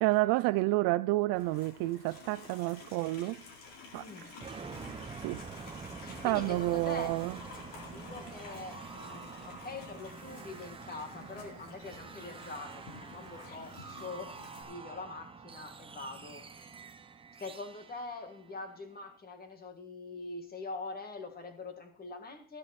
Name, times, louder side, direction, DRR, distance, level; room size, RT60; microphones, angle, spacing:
voice 1, 0.0-3.4 3.9-4.3 4.8-5.4 6.2-7.4, right 20 dB, 55° right, 0.5 m, -30 dB
Livestock farm animals working animals, 1.3-14.6, left 4 dB, 70° left, 4.4 m, -51 dB
voice 2, 3.9-4.4 6.0-7.2 7.9-16.7 17.4-22.6, left 3 dB, 20° left, 1.9 m, -44 dB
sound 1, 4.4-19.1, right 5 dB, 10° right, 0.9 m, -47 dB
14.0 x 11.5 x 4.2 m
cardioid pair, 150°, 43 cm